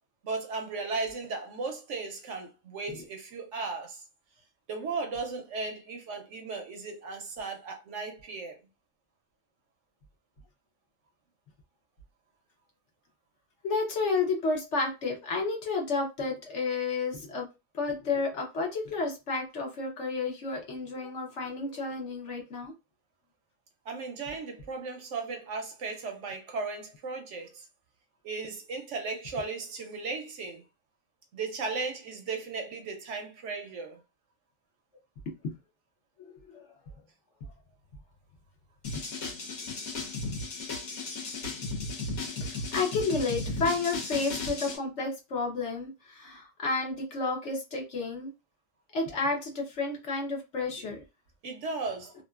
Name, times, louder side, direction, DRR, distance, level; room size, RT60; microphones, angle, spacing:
voice 1, 0.2-4.0 4.7-8.6 23.9-27.7 28.2-30.6 31.3-34.0 51.4-52.1, right 4 dB, 65° right, 0.8 m, -36 dB
voice 2, 13.6-17.5 17.7-22.7 35.4-35.5 36.2-36.6 42.4-48.3 48.9-51.0, left 3 dB, 60° left, 1.1 m, -31 dB
sound 1, 38.8-44.8, left 3 dB, 80° left, 1.4 m, -35 dB
2.9 x 2.5 x 2.3 m
omnidirectional pair, 1.5 m